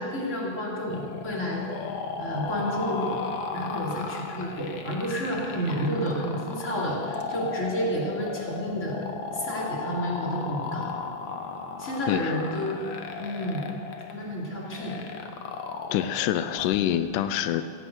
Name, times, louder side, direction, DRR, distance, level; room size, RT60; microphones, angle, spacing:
voice 1, 0.0-1.7 2.2-3.2 3.5-9.0 9.3-11.0 11.8-12.7 13.2-13.7 14.1-15.0, equal, 25° left, -4 dB, 3.1 m, -30 dB
sound 1, 0.9-16.8, left 5 dB, 65° left, 1.2 m, -36 dB
voice 2, 15.9-17.6, left 11 dB, 90° left, 11 dB, 2.2 m, -26 dB
16.5 x 10.0 x 7.9 m, 2.3 s
omnidirectional pair, 3.6 m